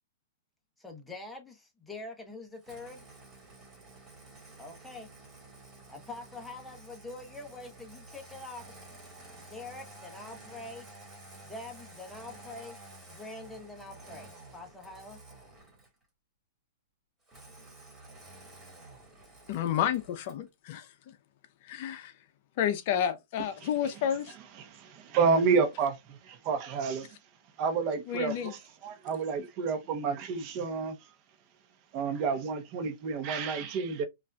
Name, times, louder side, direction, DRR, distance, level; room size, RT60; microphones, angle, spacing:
voice 1, 0.8-3.0 4.6-5.1 5.9-8.7 9.3-10.8 11.4-12.8 13.1-15.2, left 2 dB, 5° left, 0.9 m, -45 dB
Engine starting, 2.6-16.0 17.3-20.5, right 2 dB, 15° right, 1.8 m, -51 dB
voice 2, 19.5-21.1 21.6-22.1 22.6-24.3 28.1-28.5, left 9 dB, 50° left, 0.6 m, -30 dB
voice 3, 24.6-27.1 27.6-31.0 31.9-34.0, right 5 dB, 35° right, 0.8 m, -30 dB
5.3 x 2.5 x 2.3 m
hypercardioid pair, 150°, 0 cm